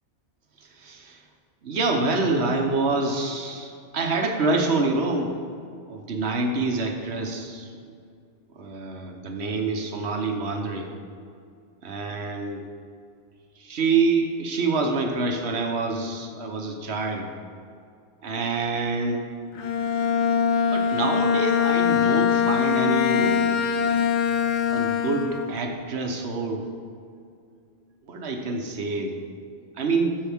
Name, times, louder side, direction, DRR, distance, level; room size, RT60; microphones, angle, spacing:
voice 1, 0.8-1.2 1.6-5.4 5.9-7.7 8.6-10.9 11.8-12.6 13.6-17.3 18.2-19.3 20.7-23.5 24.7-26.7 28.1-29.2 29.8-30.2, right 3 dB, 65° right, 3 dB, 1.2 m, -26 dB
Bowed string instrument, 19.6-25.6, left 7 dB, 60° left, 0.5 m, -23 dB
13.0 x 5.4 x 3.5 m, 2.3 s
omnidirectional pair, 1.2 m